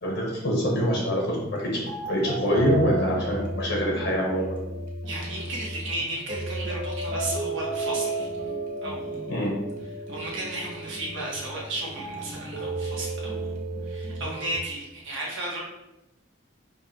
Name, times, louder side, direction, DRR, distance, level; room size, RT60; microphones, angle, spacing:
voice 1, 0.0-4.6 9.3-9.6, equal, 70° left, -2 dB, 0.8 m, -25 dB
sound 1, 0.6-14.6, right 2 dB, 45° right, 0.6 m, -33 dB
voice 2, 5.0-8.3 8.8-9.3 10.1-13.5 13.8-15.6, right 1 dB, 80° right, -4 dB, 1.1 m, -34 dB
5.1 x 2.3 x 2.7 m, 0.93 s
head